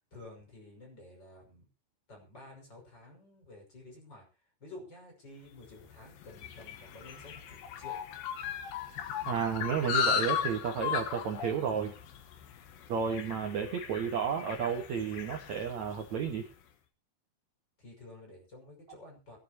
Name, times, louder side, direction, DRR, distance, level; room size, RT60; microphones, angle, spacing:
voice 1, 0.1-1.6 2.1-4.2 4.6-8.0 17.8-19.4, left 2 dB, 25° left, 1 dB, 6.2 m, -51 dB
sound 1, 5.7-16.3, left 7 dB, 65° left, 3.0 m, -36 dB
voice 2, 9.3-11.9 12.9-16.5, right 7 dB, 60° right, 4 dB, 2.2 m, -32 dB
22.5 x 12.0 x 2.9 m, 0.31 s
omnidirectional pair, 4.8 m